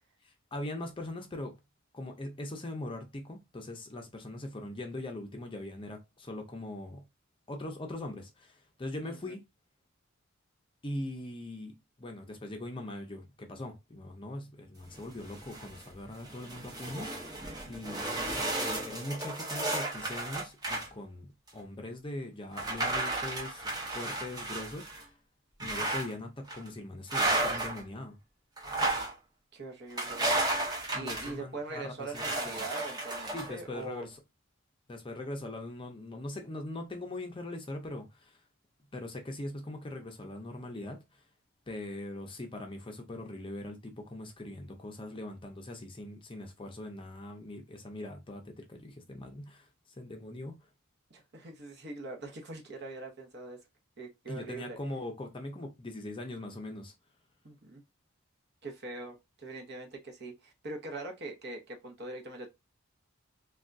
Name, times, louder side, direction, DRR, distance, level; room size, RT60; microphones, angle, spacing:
voice 1, 0.2-1.6 1.9-7.0 7.5-9.4 10.8-25.1 25.6-28.2 30.9-32.2 33.3-34.2 34.9-38.4 38.9-41.2 41.7-49.7 50.0-50.5 54.3-56.9, left 1 dB, 25° left, 0.5 m, -41 dB
voice 2, 9.0-9.4 29.5-30.3 31.0-34.1 51.1-53.6 54.0-54.8 57.4-57.8 58.6-62.5, right 2 dB, 50° right, 0.9 m, -42 dB
sound 1, 14.9-15.8 16.2-20.9 21.5-21.6 22.5-25.0 25.6-26.1 26.5-26.7 27.1-27.8 28.6-29.1 30.0-31.3 32.1-33.5, right 2 dB, 20° right, 0.7 m, -33 dB
3.4 x 2.3 x 2.5 m
head